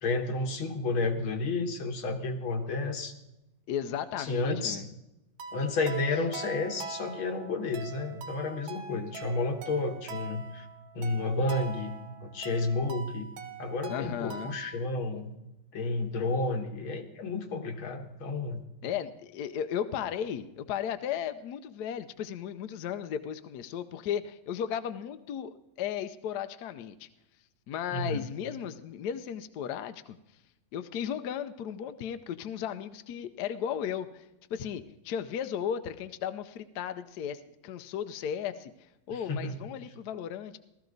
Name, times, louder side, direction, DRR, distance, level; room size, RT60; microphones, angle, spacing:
voice 1, 0.0-3.1 4.2-4.8 5.5-10.7 10.9-15.4 15.7-18.6 27.9-28.3 39.1-39.7, left 3 dB, 80° left, 5 dB, 2.1 m, -31 dB
voice 2, 3.7-4.9 13.9-14.6 18.8-27.1 27.7-30.2 30.7-38.7 39.1-40.6, left 9 dB, 65° left, 10 dB, 1.0 m, -35 dB
sound 1, 5.4-14.8, right 5 dB, 85° right, 2.0 m, -43 dB
16.0 x 13.5 x 3.9 m, 0.92 s
omnidirectional pair, 2.2 m